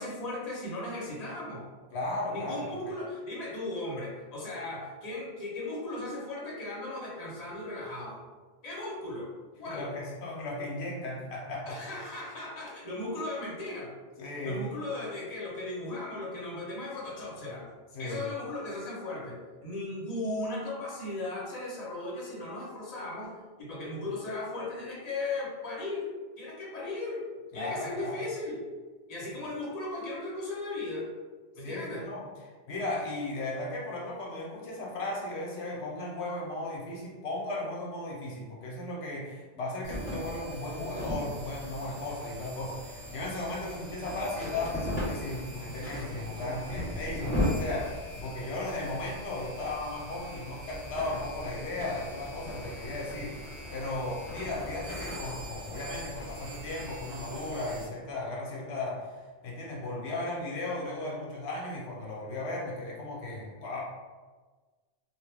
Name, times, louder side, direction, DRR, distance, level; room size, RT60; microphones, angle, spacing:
voice 1, 0.0-1.7 2.3-8.2 8.6-9.3 9.6-9.9 11.7-13.9 14.4-17.7 18.0-27.2 27.5-28.6 29.1-31.1 31.5-32.1, left 2 dB, 40° left, -5 dB, 0.9 m, -37 dB
voice 2, 1.9-2.9 9.7-11.8 14.2-14.6 17.9-18.2 27.5-28.2 31.6-32.3 32.7-63.8, left 2 dB, 90° left, -3 dB, 1.0 m, -36 dB
sound 1, 39.8-57.8, left 1 dB, 40° right, 1.2 m, -38 dB
2.9 x 2.1 x 3.2 m, 1.4 s
omnidirectional pair, 1.1 m